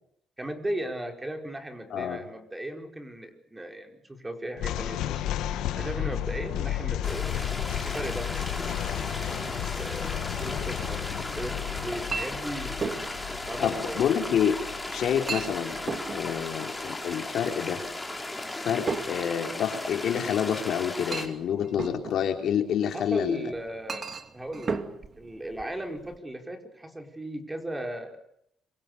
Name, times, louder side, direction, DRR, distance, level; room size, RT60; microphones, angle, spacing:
voice 1, 0.4-5.2 5.8-7.3 7.8-8.3 9.2-11.1 11.3-13.1 13.5-14.1 22.9-24.8 25.2-28.2, right 1 dB, 15° right, 4 dB, 4.9 m, -37 dB
voice 2, 1.9-2.2 13.6-14.6 14.9-17.8 18.6-23.5, left 8 dB, 70° left, 4 dB, 3.4 m, -28 dB
sound 1, 4.6-15.9, left 12 dB, 90° left, 1.8 m, -33 dB
sound 2, 7.0-21.3, left 2 dB, 10° left, 4.9 m, -36 dB
Chink clink, 10.6-26.2, right 5 dB, 45° right, 2.2 m, -39 dB
26.5 x 24.5 x 6.8 m, 0.73 s
cardioid pair, 90°, 0 cm